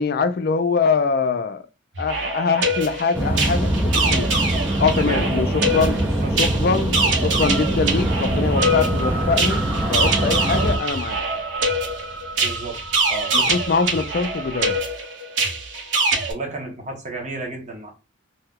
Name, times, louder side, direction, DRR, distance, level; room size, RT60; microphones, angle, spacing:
voice 1, 0.0-1.6 2.0-4.3 4.8-6.0 6.4-9.6 9.9-11.2 13.3-14.8, left 4 dB, 50° left, 0.4 m, -23 dB
sound 1, 1.9-16.3, right 2 dB, 65° right, 0.8 m, -24 dB
sound 2, 3.1-10.8, right 1 dB, 10° right, 0.4 m, -23 dB
voice 2, 5.0-5.3 6.2-6.3 12.4-12.8 13.1-13.3 16.3-17.9, right 2 dB, 35° right, 0.9 m, -32 dB
sound 3, 6.3-14.8, right 2 dB, 80° right, 1.2 m, -35 dB
2.7 x 2.2 x 3.5 m
head